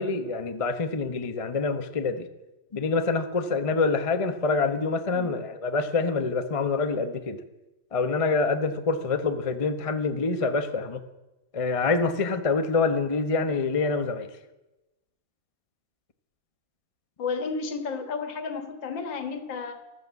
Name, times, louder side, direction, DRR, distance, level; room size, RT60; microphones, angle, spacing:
voice 1, 0.0-2.3 2.7-7.4 7.9-11.0 11.5-14.3, left 4 dB, 30° left, 8 dB, 0.6 m, -26 dB
voice 2, 17.2-19.8, left 5 dB, 70° left, 7 dB, 2.1 m, -32 dB
13.0 x 13.0 x 8.2 m, 1.0 s
omnidirectional pair, 2.1 m